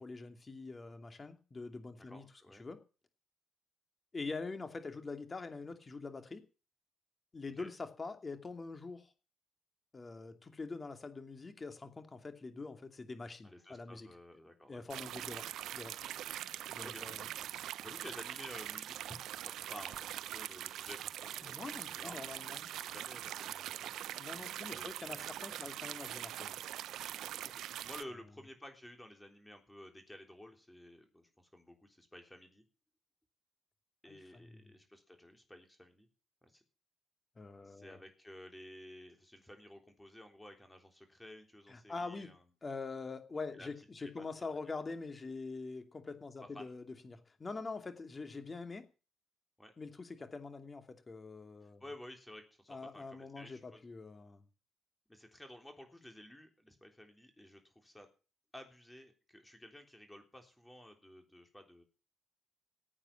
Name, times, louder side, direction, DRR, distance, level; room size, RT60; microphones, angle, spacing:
voice 1, 0.0-2.2 2.6-2.8 4.1-6.4 7.3-9.1 9.9-14.1 14.7-15.5 15.7-15.9 16.7-17.3 21.4-22.7 24.2-26.6 34.1-34.7 37.4-38.0 41.7-42.3 42.6-48.9 49.8-51.8 52.7-54.5, left 3 dB, 30° left, 7 dB, 2.7 m, -44 dB
voice 2, 2.1-2.6 7.6-7.7 13.4-14.8 16.8-22.3 22.8-24.0 24.7-25.7 27.5-32.6 34.0-36.1 36.4-36.6 37.6-42.4 43.5-43.7 44.0-44.6 46.5-46.7 49.6-49.7 51.6-53.8 55.1-58.1 58.5-61.8, left 1 dB, 10° left, 4 dB, 3.6 m, -53 dB
sound 1, 14.9-28.0, right 12 dB, 80° right, 0.6 m, -43 dB
16.0 x 8.9 x 7.3 m, 0.35 s
cardioid pair, 90°, 0 cm